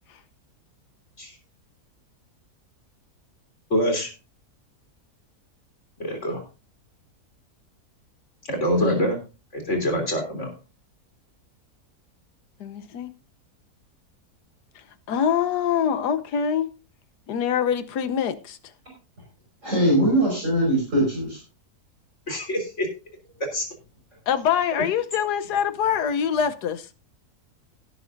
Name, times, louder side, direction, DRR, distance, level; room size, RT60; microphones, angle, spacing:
voice 1, 3.7-4.1 6.0-6.4 8.5-9.2 9.5-10.5 19.8-20.1 22.3-22.9 23.5-23.7, equal, 45° left, 3.7 m, -25 dB
voice 2, 12.6-13.1 14.7-16.7 17.3-18.6 24.3-26.9, left 8 dB, 80° left, 1.5 m, -24 dB
voice 3, 19.6-21.4, right 1 dB, 50° right, 5.5 m, -21 dB
17.0 x 9.5 x 2.6 m
omnidirectional pair, 1.7 m